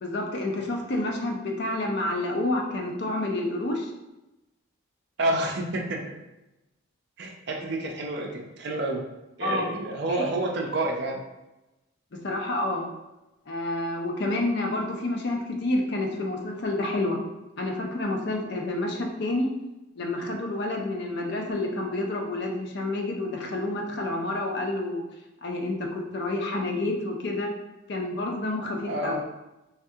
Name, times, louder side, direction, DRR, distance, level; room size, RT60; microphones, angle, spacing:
voice 1, 0.0-3.9 7.6-7.7 9.4-9.7 10.1-10.2 12.1-12.9 13.5-17.2 17.6-19.5 20.0-25.0 25.4-27.5 27.9-29.2, left 2 dB, 50° left, 1 dB, 0.5 m, -29 dB
voice 2, 5.2-6.1 7.2-9.0 9.4-11.2 28.9-29.2, right 1 dB, 55° right, 1 dB, 0.5 m, -29 dB
3.5 x 2.2 x 2.7 m, 0.98 s
head